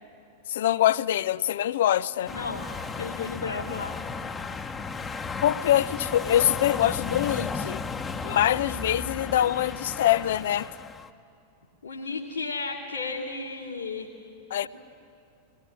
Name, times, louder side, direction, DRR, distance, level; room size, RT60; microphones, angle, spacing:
voice 1, 0.5-2.3 5.4-7.8 8.2-10.7 14.5-14.7, left 12 dB, 60° left, 0.5 m, -24 dB
voice 2, 2.3-2.6 2.9-3.9 11.8-14.1 14.6-14.7, left 4 dB, 75° left, 2.5 m, -33 dB
sound 1, 2.3-11.1, left 4 dB, 15° left, 1.0 m, -35 dB
21.5 x 20.0 x 9.9 m
figure-of-eight pair, 90°, 0 cm